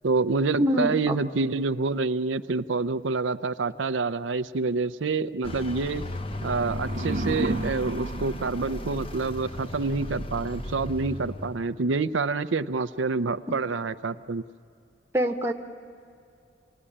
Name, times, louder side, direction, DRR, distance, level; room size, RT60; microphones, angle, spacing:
voice 1, 0.0-6.0 6.4-14.4, right 4 dB, 90° right, 12 dB, 0.6 m, -27 dB
voice 2, 0.6-1.1 15.1-15.5, equal, 15° right, 3 dB, 1.2 m, -24 dB
Vehicle, 5.4-11.8, left 1 dB, 30° left, 0.8 m, -35 dB
sound 1, 6.3-9.3, right 1 dB, 50° right, 0.7 m, -33 dB
27.5 x 19.0 x 10.0 m, 2.6 s
head